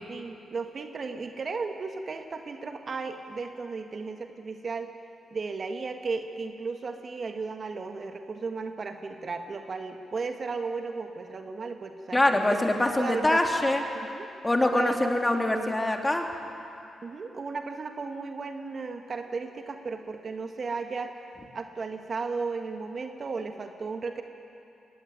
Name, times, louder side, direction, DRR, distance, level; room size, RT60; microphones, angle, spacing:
voice 1, 0.1-4.9 5.3-12.6 13.0-13.4 13.9-14.3 14.7-15.8 17.0-21.1 21.5-24.2, right 4 dB, 50° right, 5 dB, 1.8 m, -35 dB
voice 2, 12.1-13.8 14.4-16.2, left 1 dB, 20° left, 2 dB, 3.3 m, -24 dB
21.5 x 17.0 x 9.5 m, 2.6 s
hypercardioid pair, 40°, 0 cm